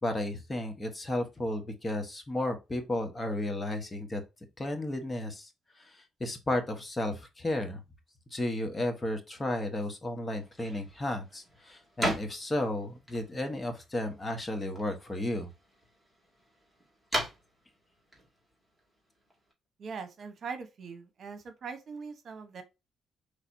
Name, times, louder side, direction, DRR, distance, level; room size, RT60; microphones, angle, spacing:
voice 1, 0.0-4.2 4.6-5.5 5.8-7.8 8.3-15.5, left 1 dB, 25° left, 1.3 m, -33 dB
sound 1, 10.3-19.5, equal, ahead, 2.5 m, -40 dB
voice 2, 19.8-22.6, right 5 dB, 55° right, 1.1 m, -41 dB
5.7 x 3.3 x 2.7 m
cardioid pair, 90°, 0 cm